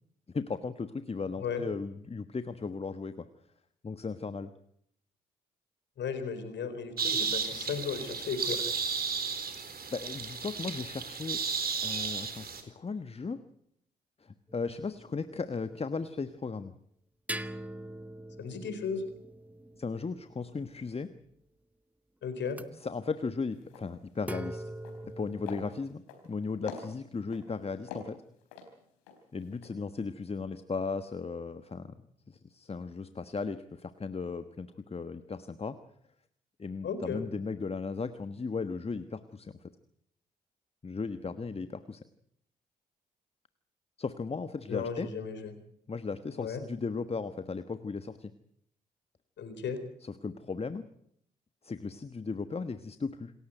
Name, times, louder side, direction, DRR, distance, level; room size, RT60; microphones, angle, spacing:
voice 1, 0.3-3.3 3.8-4.5 9.9-11.4 11.8-13.4 14.2-16.7 19.8-21.1 22.7-24.7 25.0-28.2 29.3-31.9 32.3-35.8 36.6-39.5 40.8-42.0 44.0-45.1 45.9-48.3 50.0-50.9 51.6-53.3, left 4 dB, 30° left, 11 dB, 1.3 m, -36 dB
voice 2, 6.0-8.7 18.4-19.0 22.2-22.6 36.8-37.2 44.7-45.5 46.4-46.6 49.4-49.8, left 6 dB, 60° left, 10 dB, 4.1 m, -35 dB
sound 1, 7.0-12.6, right 6 dB, 45° right, 4.1 m, -33 dB
sound 2, 14.5-15.7 17.3-21.0 22.5-22.6 24.2-25.8, right 1 dB, 5° right, 1.4 m, -43 dB
sound 3, 23.2-23.3 23.6-23.9 24.2-24.4 24.8-25.2 25.5-26.3 26.7-27.4 27.9-29.2 29.5-29.7, left 6 dB, 80° left, 4.1 m, -44 dB
27.5 x 14.5 x 9.2 m, 0.71 s
figure-of-eight pair, 40°, 21 cm